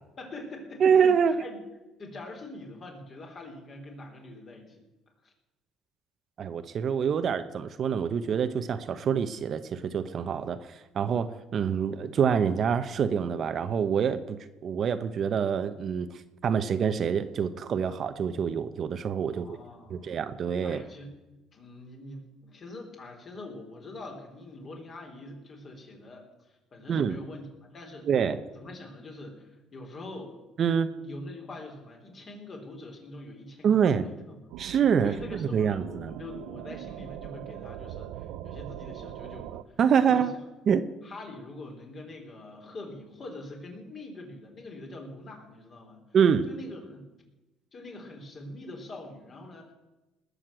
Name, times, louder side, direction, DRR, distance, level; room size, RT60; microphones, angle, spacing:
voice 1, 0.2-1.6 2.0-4.8 5.2-5.3 19.3-20.1 20.6-21.1 21.5-28.1 28.5-30.4 30.9-34.4 34.7-34.8 35.0-40.3 41.0-46.0 46.5-47.1 47.7-49.7, left 2 dB, 40° left, 2 dB, 3.9 m, -44 dB
voice 2, 0.8-1.4 6.4-16.1 16.4-19.5 19.9-20.8 26.9-27.2 28.1-28.4 30.6-30.9 33.6-34.1 34.6-36.1 39.8-40.4 40.7-40.8 46.1-46.5, right 7 dB, 50° right, 10 dB, 0.9 m, -26 dB
sound 1, 34.5-39.6, right 12 dB, 85° right, 0.6 m, -41 dB
20.0 x 6.6 x 7.6 m, 1.0 s
cardioid pair, 115°, 0 cm